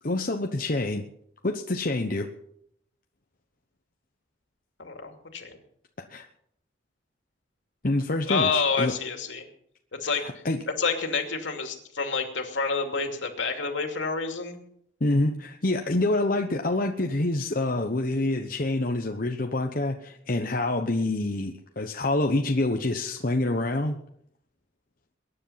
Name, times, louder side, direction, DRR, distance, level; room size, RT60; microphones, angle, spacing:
voice 1, 0.0-1.0 1.4-2.3 6.1-6.2 7.8-8.9 10.0-10.6 15.0-24.0, left 2 dB, 45° left, 3 dB, 1.0 m, -27 dB
voice 2, 4.8-5.6 8.3-9.4 10.0-10.2 10.8-14.6, left 4 dB, 70° left, 4 dB, 2.7 m, -28 dB
22.0 x 10.0 x 5.8 m, 0.71 s
head